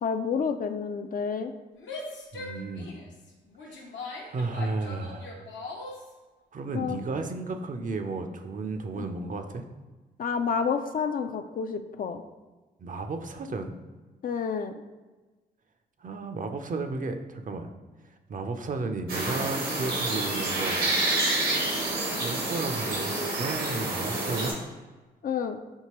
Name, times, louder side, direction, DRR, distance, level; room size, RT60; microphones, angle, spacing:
voice 1, 0.0-1.5 6.7-7.0 9.0-9.1 10.2-12.2 14.2-14.7 25.2-25.6, left 6 dB, 45° left, 7 dB, 0.4 m, -29 dB
Female speech woman speaking / Yell, 1.7-6.1, left 3 dB, 70° left, 0.7 m, -40 dB
voice 2, 2.3-2.9 3.7-3.9 4.3-5.3 6.5-9.7 12.8-13.8 16.0-17.7 18.3-20.8 22.2-24.6, right 3 dB, 40° right, 7 dB, 0.5 m, -33 dB
sound 1, 19.1-24.5, right 2 dB, 80° right, 1.2 m, -28 dB
4.5 x 2.8 x 3.0 m, 1.2 s
hypercardioid pair, 40°, 20 cm